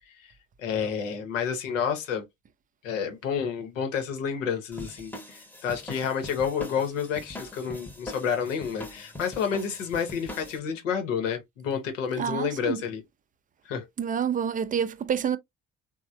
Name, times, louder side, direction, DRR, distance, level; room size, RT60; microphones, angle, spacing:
voice 1, 0.6-2.2 2.8-13.0 13.7-13.9, left 7 dB, 90° left, 0.8 m, -30 dB
sound 1, 4.7-10.6, left 1 dB, 5° left, 0.8 m, -42 dB
voice 2, 12.2-12.8 14.0-15.4, right 8 dB, 25° right, 0.4 m, -28 dB
3.1 x 2.0 x 2.5 m
hypercardioid pair, 55°, 37 cm